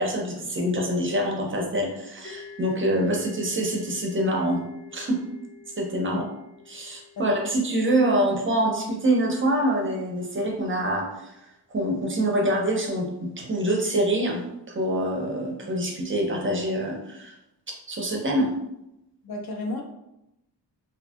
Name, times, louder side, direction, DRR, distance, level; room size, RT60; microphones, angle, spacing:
voice 1, 0.0-4.7 4.9-5.2 5.8-6.2 6.7-11.3 11.7-14.4 14.7-17.3 17.9-18.5, right 1 dB, 30° right, 0 dB, 0.4 m, -25 dB
sound 1, 2.2-9.8, left 6 dB, 25° left, 0.9 m, -48 dB
voice 2, 7.2-7.5 19.2-19.8, left 2 dB, 60° left, 1 dB, 0.6 m, -33 dB
2.6 x 2.3 x 2.5 m, 0.86 s
wide cardioid pair, 180°, 42 cm